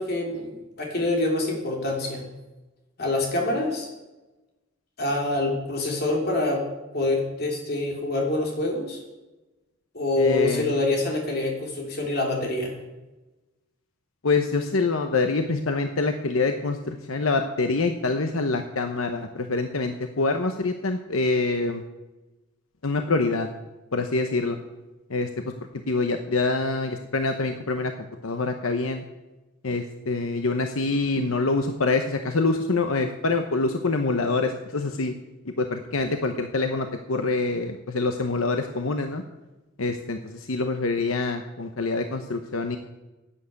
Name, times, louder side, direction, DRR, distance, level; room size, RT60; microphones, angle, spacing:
voice 1, 0.0-2.2 3.0-3.9 5.0-6.6 6.9-9.0 9.9-12.8, left 2 dB, 50° left, 0 dB, 3.4 m, -26 dB
voice 2, 10.2-10.8 14.2-21.8 22.8-23.5 23.9-24.6 25.1-25.5 25.9-27.9 28.2-29.0 29.6-35.1 35.4-39.2 39.8-42.8, left 3 dB, 80° left, 6 dB, 1.0 m, -25 dB
11.0 x 9.2 x 8.2 m, 1.1 s
head